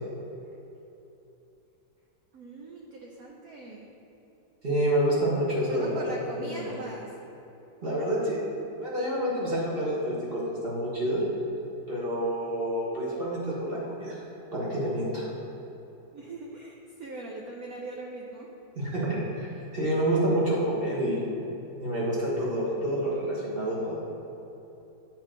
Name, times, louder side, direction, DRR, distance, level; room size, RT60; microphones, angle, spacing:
voice 1, 2.3-3.9 5.7-7.1 16.1-18.5, right 2 dB, 65° right, -1 dB, 0.9 m, -41 dB
voice 2, 4.6-6.7 7.8-8.4 8.8-11.2 11.9-14.1 14.5-15.3 18.7-19.5 19.7-21.2 21.8-24.0, right 1 dB, 35° right, -7 dB, 1.4 m, -28 dB
9.4 x 4.5 x 3.8 m, 3.0 s
omnidirectional pair, 2.1 m